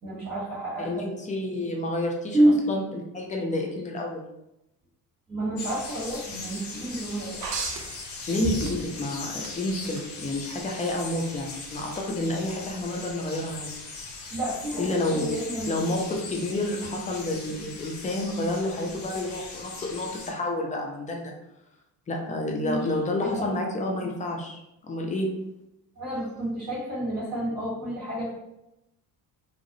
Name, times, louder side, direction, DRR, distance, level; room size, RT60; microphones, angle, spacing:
voice 1, 0.0-1.1 2.3-2.6 5.3-7.4 14.3-16.6 22.6-22.8 23.2-23.5 26.0-28.4, right 1 dB, 15° right, -6 dB, 1.1 m, -29 dB
voice 2, 0.8-2.4 2.7-4.2 8.3-13.7 14.8-15.3 15.7-21.3 22.1-25.3, left 1 dB, 15° left, 1 dB, 0.4 m, -29 dB
sound 1, 5.6-20.3, left 3 dB, 75° left, 0.7 m, -39 dB
sound 2, 7.4-9.0 9.4-10.1 11.6-11.8, right 4 dB, 40° right, 0.6 m, -33 dB
2.4 x 2.0 x 2.7 m, 0.88 s
hypercardioid pair, 55°, 50 cm